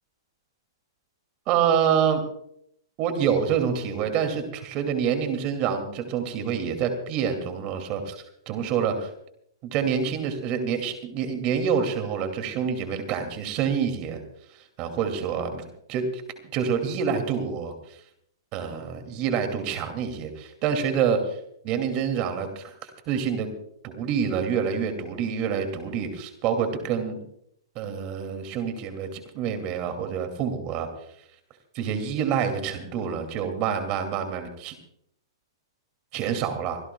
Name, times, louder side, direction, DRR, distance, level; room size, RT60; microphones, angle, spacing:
voice 1, 1.5-2.2 3.0-9.1 9.6-14.2 14.5-15.6 15.9-16.2 16.5-18.0 18.5-21.4 21.6-23.5 23.8-27.2 27.7-30.9 31.7-34.7 36.1-36.8, right 7 dB, 40° right, 6 dB, 2.6 m, -27 dB
25.5 x 16.5 x 2.4 m, 0.72 s
hypercardioid pair, 125°, 2 cm